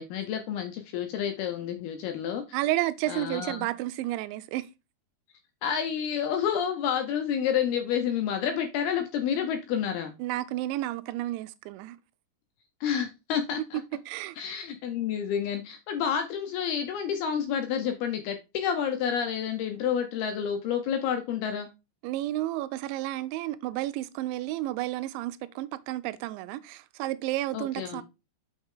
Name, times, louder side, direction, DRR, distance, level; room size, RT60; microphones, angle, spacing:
voice 1, 0.0-2.6 3.1-3.7 5.6-10.1 12.8-13.8 14.4-21.7 27.5-28.0, left 8 dB, 80° left, 2.4 m, -29 dB
voice 2, 2.5-4.7 10.2-12.0 13.7-14.4 22.0-28.0, right 15 dB, 90° right, 2.9 m, -31 dB
6.3 x 5.8 x 3.7 m
omnidirectional pair, 5.2 m